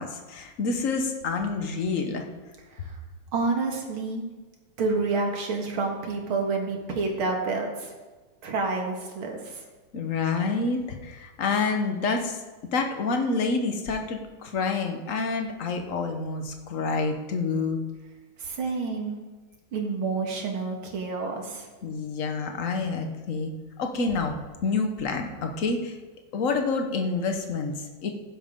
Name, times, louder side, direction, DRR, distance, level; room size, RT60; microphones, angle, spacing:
voice 1, 0.0-2.2 9.9-12.4 12.7-17.8 21.8-23.5 23.8-24.4 24.6-25.9 26.3-27.7 28.0-28.1, left 4 dB, 45° left, 4 dB, 1.3 m, -28 dB
voice 2, 3.3-4.2 4.8-7.9 8.4-9.6 18.4-19.2 19.7-21.7, right 3 dB, 75° right, 2 dB, 2.6 m, -29 dB
15.5 x 11.0 x 3.8 m, 1.3 s
omnidirectional pair, 2.3 m